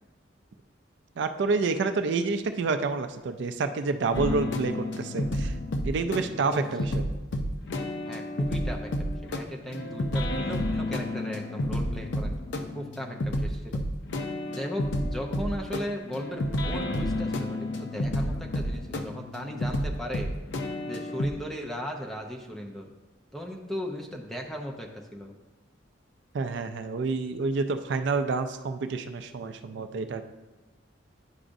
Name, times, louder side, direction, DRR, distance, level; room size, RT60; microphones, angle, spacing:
voice 1, 1.2-5.6 5.8-7.1 26.3-30.2, right 4 dB, 60° right, 9 dB, 0.4 m, -28 dB
sound 1, 4.1-21.3, left 1 dB, 60° left, 0.5 m, -31 dB
voice 2, 8.1-13.8 14.5-20.3 20.9-22.9 23.3-25.3, equal, ahead, 0 dB, 0.6 m, -37 dB
9.7 x 4.9 x 2.6 m, 1.1 s
head